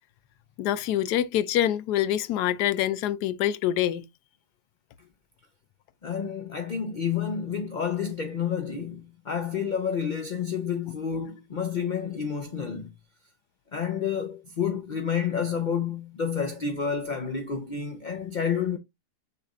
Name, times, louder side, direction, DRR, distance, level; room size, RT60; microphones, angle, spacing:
voice 1, 0.6-4.0, left 12 dB, 80° left, 1.1 m, -25 dB
voice 2, 6.0-12.9 13.7-18.8, left 7 dB, 45° left, 0.6 m, -29 dB
6.8 x 3.3 x 2.4 m
omnidirectional pair, 1.7 m